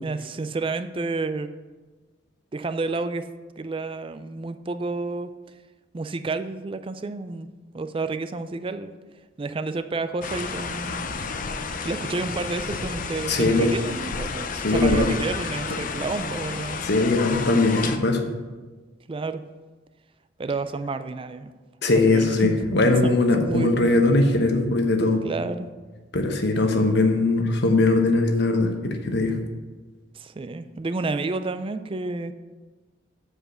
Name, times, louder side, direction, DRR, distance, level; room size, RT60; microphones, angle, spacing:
voice 1, 0.0-1.5 2.5-3.3 3.6-5.3 5.9-7.5 7.7-8.9 9.4-11.1 11.8-16.8 19.1-19.4 20.4-21.5 22.1-22.6 23.0-24.0 25.2-25.7 30.1-32.3, right 3 dB, 30° right, 10 dB, 0.4 m, -30 dB
sound 1, 10.2-18.0, left 4 dB, 45° left, 0.6 m, -31 dB
voice 2, 13.3-13.7 14.5-15.1 16.8-18.2 21.8-25.2 26.1-29.3, left 2 dB, 60° left, 4 dB, 1.1 m, -20 dB
7.7 x 4.9 x 6.4 m, 1.3 s
head